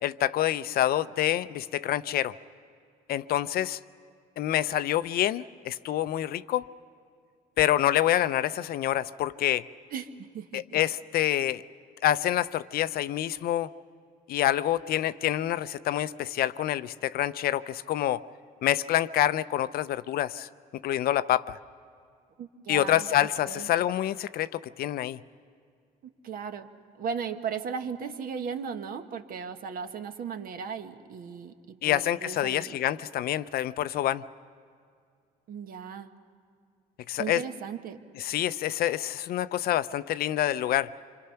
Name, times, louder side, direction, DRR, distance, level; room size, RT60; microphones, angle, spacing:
voice 1, 0.0-2.3 3.1-3.8 4.4-6.7 7.6-9.6 10.5-11.6 12.0-13.7 14.3-18.2 18.6-20.5 20.8-21.6 22.7-25.2 31.8-34.2 37.1-37.4 38.2-40.9, left 12 dB, 65° left, 15 dB, 0.5 m, -27 dB
voice 2, 9.9-10.8 22.4-23.7 26.0-26.7 27.0-32.7 35.5-36.1 37.2-38.0, right 6 dB, 60° right, 7 dB, 1.3 m, -37 dB
26.0 x 26.0 x 5.7 m, 2.2 s
cardioid pair, 110°, 17 cm